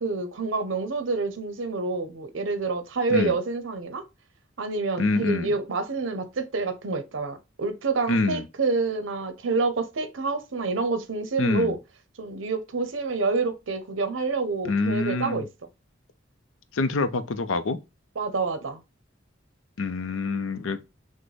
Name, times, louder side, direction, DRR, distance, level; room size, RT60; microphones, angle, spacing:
voice 1, 0.0-4.0 4.6-11.8 12.2-15.5 18.2-18.8, right 3 dB, 75° right, 0.7 m, -28 dB
voice 2, 5.0-5.5 8.1-8.5 11.4-11.8 14.6-15.4 16.7-17.8 19.8-20.8, left 3 dB, 85° left, 0.5 m, -26 dB
6.1 x 2.1 x 3.3 m
head